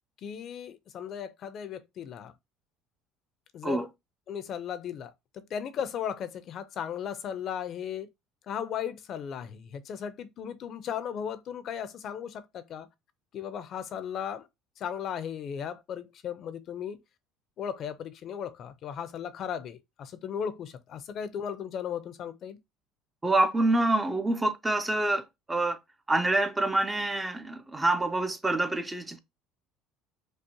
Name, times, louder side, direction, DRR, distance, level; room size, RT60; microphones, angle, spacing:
voice 1, 0.2-2.3 3.5-3.9 4.3-8.1 8.5-12.9 13.3-14.5 14.8-17.0 17.6-22.6, left 8 dB, 40° left, 0.5 m, -36 dB
voice 2, 23.2-25.8 26.1-29.2, right 2 dB, 10° right, 0.4 m, -26 dB
5.2 x 2.1 x 2.8 m
cardioid pair, 145°, 0 cm